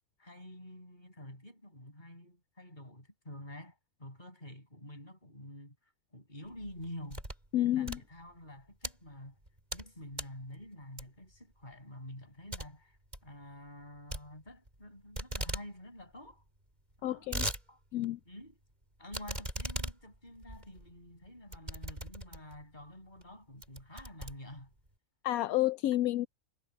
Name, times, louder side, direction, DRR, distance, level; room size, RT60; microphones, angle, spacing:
voice 1, 0.2-7.2 7.5-9.4 9.7-16.4 17.0-17.3 17.7-17.8 18.2-18.6 19.0-24.7, left 1 dB, 30° left, 6.9 m, -49 dB
sound 1, 6.5-7.5 7.8-8.9 9.4-9.9 10.1-10.4 11.0-11.3 11.7-11.8 12.1-12.2 12.5-12.7 13.0-13.3 14.1-14.8 15.1-15.7 16.0-16.1 16.3-16.4 16.9-17.6 18.0-18.1 19.1-22.6 23.2-23.3 23.6-24.9, right 1 dB, 30° right, 5.9 m, -39 dB
voice 2, 7.5-8.0 17.0-17.5 17.9-18.2 25.2-26.3, left 14 dB, 80° left, 1.0 m, -30 dB
omnidirectional pair, 1.5 m